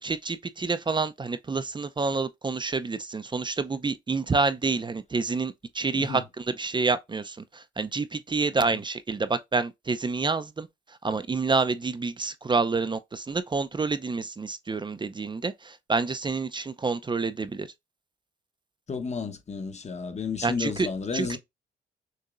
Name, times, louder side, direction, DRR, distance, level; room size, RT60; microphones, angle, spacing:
voice 1, 0.0-10.7 11.0-17.7 20.4-20.9 21.1-21.4, right 4 dB, 25° right, 0.6 m, -28 dB
voice 2, 18.9-21.4, left 5 dB, 35° left, 1.0 m, -32 dB
6.6 x 2.9 x 2.5 m
cardioid pair, 90°, 20 cm